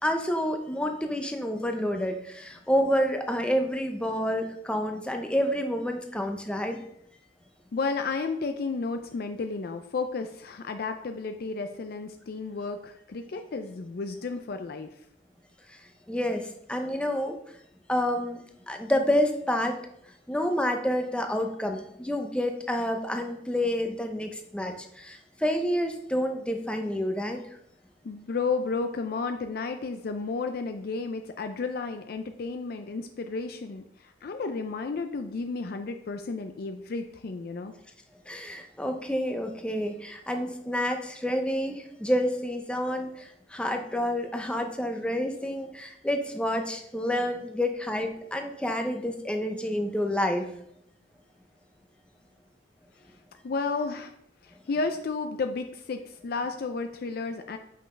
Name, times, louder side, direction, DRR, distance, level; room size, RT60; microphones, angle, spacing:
voice 1, 0.0-6.8 15.7-15.8 16.1-17.4 17.9-19.8 20.3-27.4 38.3-50.5, equal, 5° left, 4 dB, 0.6 m, -29 dB
voice 2, 7.7-14.9 28.0-37.8 53.4-54.1 54.4-57.6, left 4 dB, 50° left, 7 dB, 0.4 m, -32 dB
7.4 x 5.6 x 3.2 m, 0.72 s
head